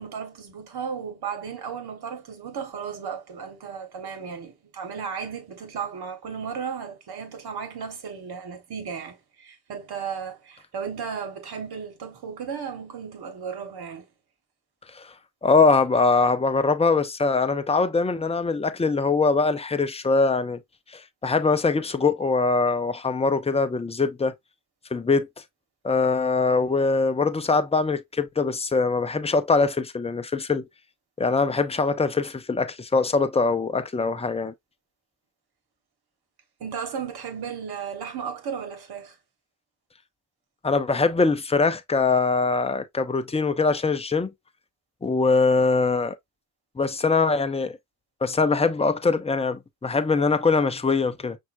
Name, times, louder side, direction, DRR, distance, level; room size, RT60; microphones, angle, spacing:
voice 1, 0.0-14.1 36.6-39.2, right 7 dB, 60° right, 1.5 m, -35 dB
voice 2, 15.4-20.6 20.9-24.4 24.9-25.3 25.8-30.7 31.2-34.5 40.6-44.3 45.0-46.2 46.8-47.8 48.2-51.4, left 4 dB, 15° left, 0.7 m, -22 dB
5.7 x 2.7 x 2.6 m
hypercardioid pair, 50°, 44 cm